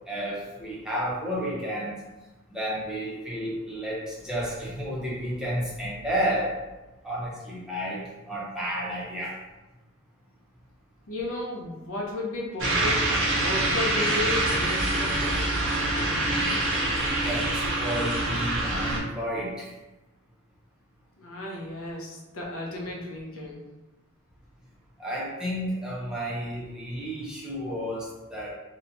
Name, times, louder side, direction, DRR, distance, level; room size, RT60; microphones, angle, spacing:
voice 1, 0.1-2.0 2.5-6.6 7.0-9.4 17.2-19.7 25.0-28.5, equal, 5° right, -6 dB, 0.6 m, -31 dB
voice 2, 11.1-13.1 13.4-15.5 21.2-23.6, left 2 dB, 65° left, -1 dB, 0.6 m, -34 dB
sound 1, 12.6-19.0, right 1 dB, 60° right, 0.6 m, -25 dB
2.9 x 2.1 x 2.6 m, 1.1 s
head